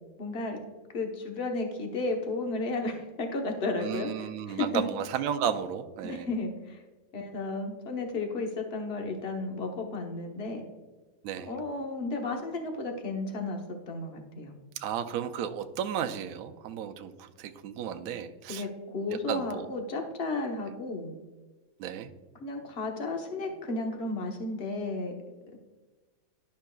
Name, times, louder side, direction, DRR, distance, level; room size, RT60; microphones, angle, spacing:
voice 1, 0.2-0.6 0.9-4.8 6.0-6.8 7.1-10.6 11.5-13.6 13.9-14.6 18.5-21.1 22.4-25.1, left 2 dB, 40° left, 2 dB, 1.0 m, -33 dB
voice 2, 3.8-6.3 11.2-11.5 14.8-18.7 19.3-19.7 21.8-22.1, right 9 dB, 85° right, 7 dB, 0.7 m, -33 dB
11.5 x 5.5 x 2.3 m, 1.2 s
omnidirectional pair, 2.1 m